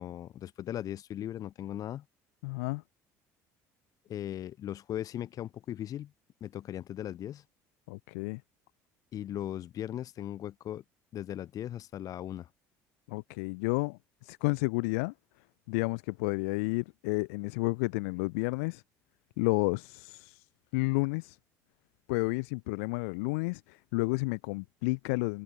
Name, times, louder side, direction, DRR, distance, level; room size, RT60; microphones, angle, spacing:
voice 1, 0.0-2.0 4.1-6.1 6.4-7.4 9.1-10.8 11.1-12.5, left 11 dB, 50° left, 1.1 m, -38 dB
voice 2, 2.4-2.8 7.9-8.4 13.1-15.1 15.7-18.8 19.4-20.4 20.7-21.4 22.1-25.4, left 29 dB, 90° left, 0.5 m, -31 dB
supercardioid pair, 100°, 8 cm